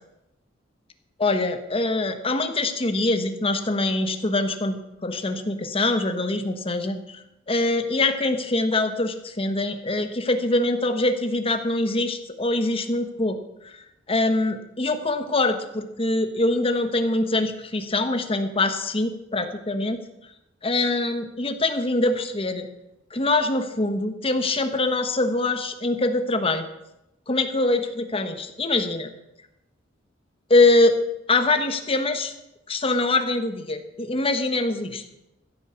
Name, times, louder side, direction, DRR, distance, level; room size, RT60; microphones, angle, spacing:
voice 1, 1.2-7.2 7.5-13.4 13.6-13.7 14.1-20.0 20.6-22.7 23.1-26.6 27.3-29.1 30.5-31.0 31.3-32.3 32.7-35.0, left 2 dB, 30° left, 8 dB, 1.3 m, -23 dB
15.0 x 8.6 x 7.1 m, 0.89 s
head